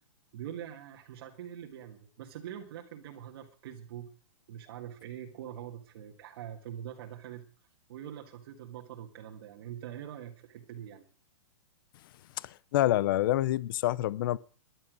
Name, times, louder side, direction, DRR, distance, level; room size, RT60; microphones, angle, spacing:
voice 1, 0.3-4.1 4.5-7.5 7.9-11.1, right 10 dB, 50° right, 1.7 m, -44 dB
voice 2, 12.4-14.4, left 14 dB, 40° left, 0.7 m, -27 dB
14.5 x 11.0 x 6.3 m
hypercardioid pair, 165°, 16 cm